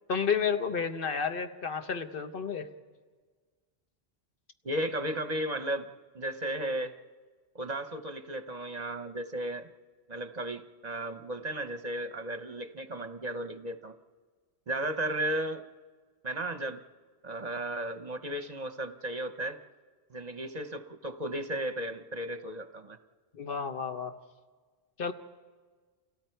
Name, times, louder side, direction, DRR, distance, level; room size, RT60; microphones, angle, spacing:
voice 1, 0.1-2.7 23.3-24.1 25.0-25.1, left 6 dB, 60° left, 7 dB, 1.3 m, -31 dB
voice 2, 4.6-5.9 6.1-7.0 7.5-9.7 10.1-14.0 14.7-15.6 16.2-16.8 17.2-19.6 20.1-23.0, right 1 dB, 45° right, 8 dB, 0.8 m, -34 dB
30.0 x 28.0 x 4.6 m, 1.5 s
omnidirectional pair, 1.1 m